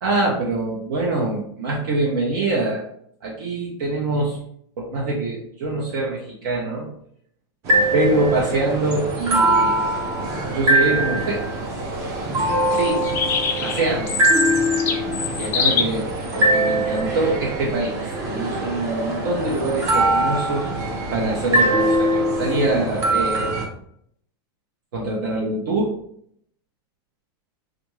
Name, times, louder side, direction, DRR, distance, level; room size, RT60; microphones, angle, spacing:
voice 1, 0.0-2.8 3.2-4.4 4.8-6.9 7.9-9.8 10.5-11.5 12.7-13.0 13.6-14.1 15.4-23.5 24.9-26.0, right 2 dB, 60° right, -3 dB, 0.8 m, -24 dB
sound 1, 7.7-23.7, right 1 dB, 25° right, 0.6 m, -22 dB
sound 2, 13.0-15.8, left 6 dB, 20° left, 0.4 m, -24 dB
3.5 x 2.5 x 3.0 m, 0.68 s
supercardioid pair, 170°, 13 cm